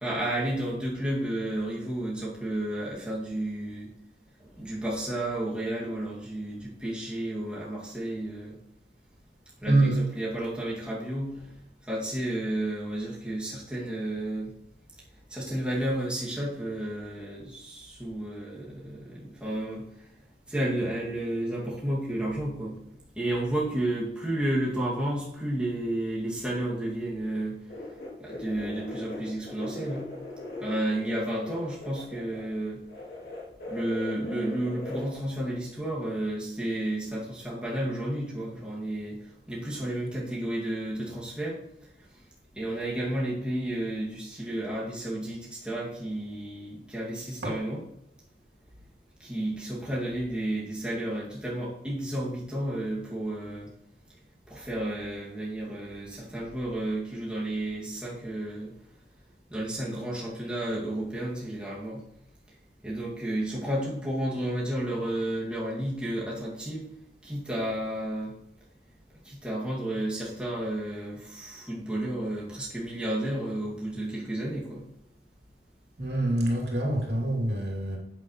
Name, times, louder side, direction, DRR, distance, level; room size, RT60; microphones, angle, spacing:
voice 1, 0.0-3.9 4.4-8.6 9.6-11.5 11.9-14.5 15.3-19.8 20.5-22.8 23.1-27.6 28.2-30.1 30.6-32.8 33.7-39.2 39.5-41.6 42.5-47.8 49.2-53.7 54.5-58.7 59.5-62.0 62.8-66.8 67.2-68.3 69.2-74.8, right 1 dB, 5° right, -6 dB, 2.3 m, -32 dB
voice 2, 9.7-10.0 47.4-47.5 76.0-78.0, right 1 dB, 70° right, -1 dB, 2.9 m, -25 dB
sound 1, 27.7-32.5 32.9-35.1, left 2 dB, 60° left, 2.8 m, -39 dB
10.0 x 8.6 x 3.2 m, 0.82 s
head